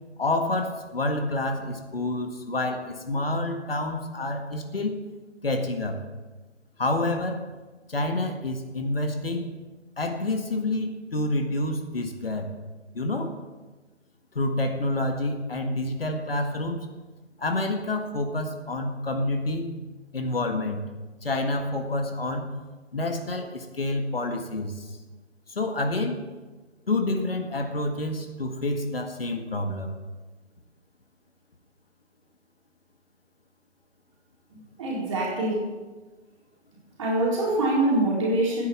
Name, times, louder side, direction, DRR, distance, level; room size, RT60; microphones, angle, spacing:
voice 1, 0.2-5.0 5.4-6.0 6.8-7.4 7.9-9.5 10.0-12.5 12.9-13.3 14.4-16.9 17.4-19.7 20.1-20.8 21.2-22.5 22.9-25.0 25.5-26.2 26.9-29.9, left 2 dB, 55° left, 5 dB, 1.8 m, -28 dB
voice 2, 34.8-35.8 37.0-38.7, right 1 dB, 25° right, -4 dB, 4.3 m, -24 dB
13.0 x 10.5 x 7.2 m, 1.2 s
figure-of-eight pair, 150°, 35 cm